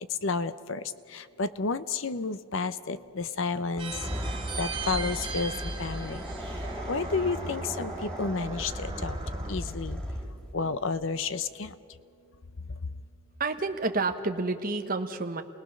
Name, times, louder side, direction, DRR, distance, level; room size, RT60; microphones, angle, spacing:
voice 1, 0.2-0.8 1.1-4.0 4.6-6.3 6.9-9.2 9.5-10.0 10.5-11.7, left 4 dB, 60° left, 13 dB, 0.7 m, -31 dB
sound 1, 3.7-10.5, equal, 5° left, 1.7 m, -36 dB
sound 2, 3.8-9.5, right 4 dB, 20° right, 1.6 m, -38 dB
voice 2, 13.4-15.4, right 3 dB, 40° right, 6 dB, 1.2 m, -29 dB
30.0 x 19.0 x 6.5 m, 2.5 s
head